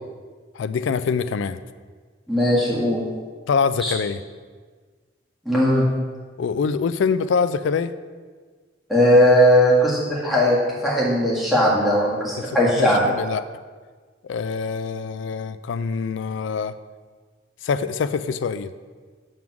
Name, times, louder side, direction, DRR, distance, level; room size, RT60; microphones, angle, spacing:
voice 1, 0.5-1.6 3.5-4.2 6.4-7.9 12.4-13.4 14.2-16.7 17.6-18.7, left 5 dB, 75° left, 14 dB, 0.3 m, -24 dB
voice 2, 2.3-3.0 3.8-3.9 5.4-5.8 8.9-10.6 10.8-13.0, equal, ahead, -7 dB, 1.6 m, -18 dB
7.6 x 3.6 x 5.9 m, 1.5 s
head